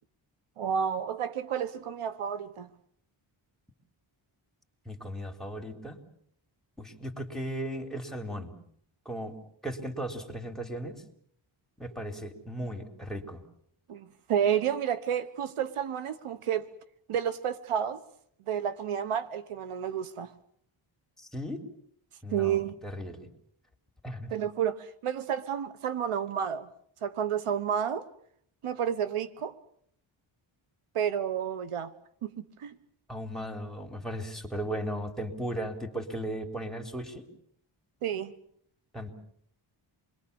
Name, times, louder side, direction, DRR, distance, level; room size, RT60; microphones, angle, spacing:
voice 1, 0.6-2.7 13.9-16.7 17.1-18.0 18.5-20.3 22.3-22.7 24.3-26.7 27.0-28.1 28.6-29.5 30.9-31.9 32.2-32.3 32.6-32.7 38.0-38.3, right 8 dB, 90° right, 1.4 m, -30 dB
voice 2, 4.9-6.0 6.8-8.6 9.1-9.4 9.6-11.0 11.8-13.4 21.2-21.6 22.2-23.3 24.0-24.3 33.1-37.3 38.9-39.1, equal, ahead, 3.9 m, -36 dB
28.0 x 22.0 x 7.1 m
cardioid pair, 95°, 50 cm